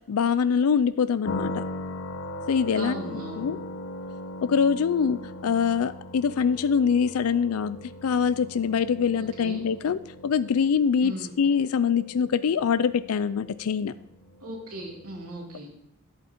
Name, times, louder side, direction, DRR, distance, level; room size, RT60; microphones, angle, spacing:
voice 1, 0.1-1.6 2.5-3.6 4.4-13.9, left 6 dB, 80° left, 14 dB, 0.4 m, -24 dB
sound 1, 1.2-15.1, left 1 dB, 65° left, 0.8 m, -39 dB
voice 2, 2.7-3.5 9.2-9.6 11.0-11.3 14.4-15.7, right 1 dB, 80° right, -1 dB, 2.9 m, -37 dB
11.0 x 8.2 x 4.4 m, 0.86 s
head